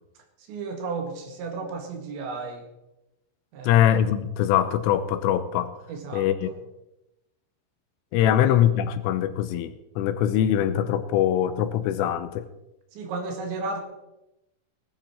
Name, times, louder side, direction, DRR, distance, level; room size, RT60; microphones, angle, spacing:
voice 1, 0.4-2.7 3.5-3.8 5.9-6.6 8.2-8.5 12.9-13.8, right 4 dB, 65° right, 4 dB, 3.8 m, -34 dB
voice 2, 3.6-5.7 6.1-6.5 8.1-12.5, left 10 dB, 85° left, 11 dB, 3.2 m, -22 dB
18.0 x 11.5 x 4.4 m, 0.92 s
omnidirectional pair, 5.9 m